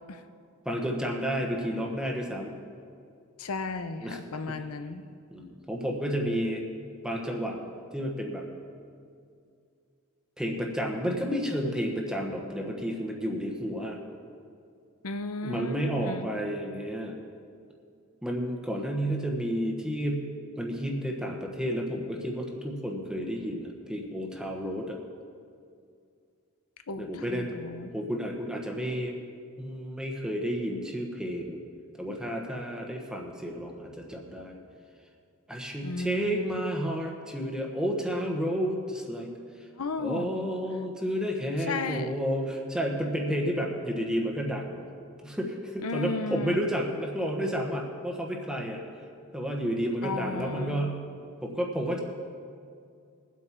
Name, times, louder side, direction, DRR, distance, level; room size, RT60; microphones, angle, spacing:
voice 1, 0.6-2.5 4.0-4.2 4.5-4.6 5.3-6.6 7.0-7.6 7.9-8.5 10.4-14.0 15.4-17.2 18.2-20.3 20.6-25.0 27.0-27.6 27.9-29.2 29.6-31.6 32.0-34.6 35.5-39.3 40.0-44.8 45.2-48.8 49.3-51.0 51.4-52.0, equal, 5° right, 1 dB, 1.1 m, -31 dB
voice 2, 3.4-5.0 15.0-16.3 26.9-27.9 35.8-36.6 39.8-40.3 41.7-42.1 45.8-46.6 50.0-50.8, left 3 dB, 90° left, 9 dB, 0.7 m, -34 dB
21.0 x 8.2 x 4.5 m, 2.4 s
head